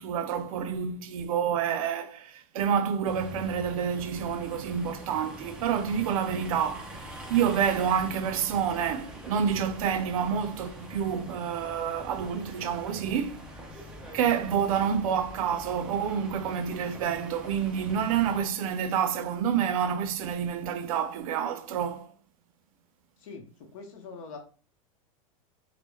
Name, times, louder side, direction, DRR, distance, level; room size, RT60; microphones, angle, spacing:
voice 1, 0.0-7.0 7.3-13.5 14.1-22.1, right 8 dB, 80° right, 0.4 m, -28 dB
sound 1, 3.0-18.4, equal, 5° right, 0.3 m, -44 dB
voice 2, 23.2-24.4, left 4 dB, 75° left, 0.6 m, -43 dB
2.1 x 2.0 x 3.0 m
supercardioid pair, 160°, 18 cm